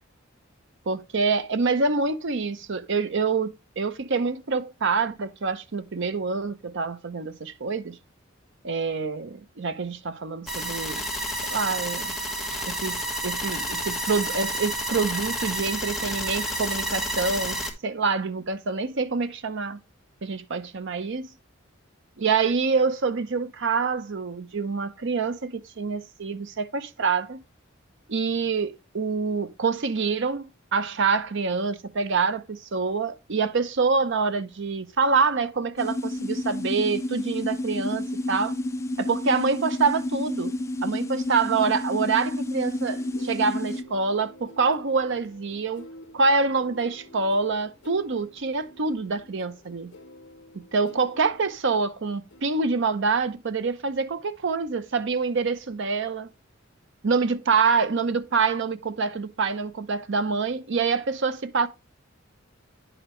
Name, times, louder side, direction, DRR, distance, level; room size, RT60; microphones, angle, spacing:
voice 1, 0.9-8.0 8.6-11.0 11.5-12.1 12.7-13.0 13.2-19.8 20.2-21.3 22.2-27.4 28.1-38.5 39.0-40.5 40.8-45.8 46.1-49.9 50.7-56.3 57.0-61.7, right 4 dB, 65° right, 0.7 m, -26 dB
sound 1, 10.5-17.7, right 1 dB, ahead, 1.4 m, -30 dB
sound 2, 35.8-43.8, left 1 dB, 15° left, 0.5 m, -30 dB
sound 3, 42.9-52.0 52.3-52.8, left 1 dB, 65° left, 0.8 m, -49 dB
10.0 x 5.0 x 3.0 m
head